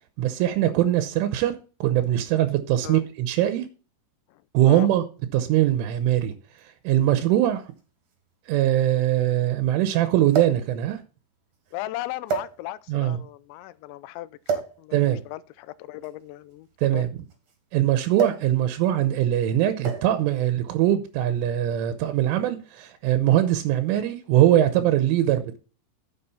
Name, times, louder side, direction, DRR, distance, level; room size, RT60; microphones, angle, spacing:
voice 1, 0.2-1.6 1.8-3.7 4.5-5.0 5.3-7.7 8.5-11.0 12.9-13.2 14.9-15.2 16.8-17.1 17.7-25.6, right 12 dB, 85° right, 3.3 m, -22 dB
voice 2, 4.3-4.9 11.7-16.7 16.9-17.1, left 16 dB, 85° left, 2.6 m, -37 dB
sound 1, 6.6-6.7 7.8-7.9 8.1-8.2 10.3-10.7 11.5-11.7 12.3-13.0 14.4-14.8 15.9-17.5 18.2-18.5 18.8-19.1 19.8-20.2 21.2-21.4, right 6 dB, 45° right, 2.5 m, -29 dB
11.0 x 7.3 x 4.2 m
omnidirectional pair, 5.7 m